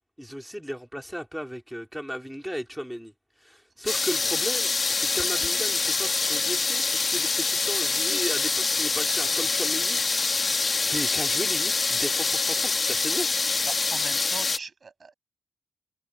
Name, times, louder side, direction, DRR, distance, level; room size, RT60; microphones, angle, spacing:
voice 1, 0.2-3.1 3.4-10.3 10.6-13.3, equal, ahead, 3.9 m, -35 dB
sound 1, 3.9-14.6, left 3 dB, 40° left, 1.4 m, -25 dB
voice 2, 13.7-15.1, right 5 dB, 45° right, 6.5 m, -40 dB
cardioid pair, 60°, 0 cm